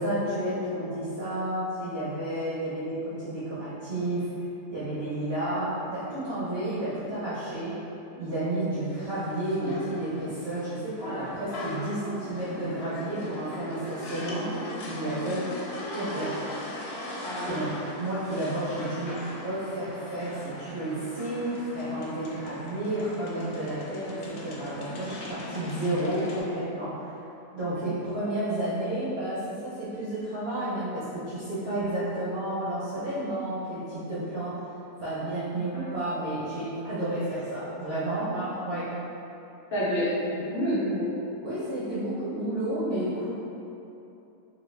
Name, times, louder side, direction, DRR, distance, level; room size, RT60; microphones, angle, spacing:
voice 1, 0.0-4.3 4.7-7.8 8.2-14.5 14.9-15.5 15.8-16.4 17.4-27.2 27.5-34.6 35.0-38.9 41.4-43.4, right 1 dB, 65° right, -12 dB, 0.6 m, -31 dB
sound 1, 8.8-26.4, left 1 dB, 85° left, 1.3 m, -39 dB
voice 2, 17.2-17.6 22.9-23.0 35.7-35.9 39.7-41.1, equal, 60° left, -10 dB, 0.5 m, -29 dB
3.2 x 2.3 x 3.2 m, 2.8 s
omnidirectional pair, 2.0 m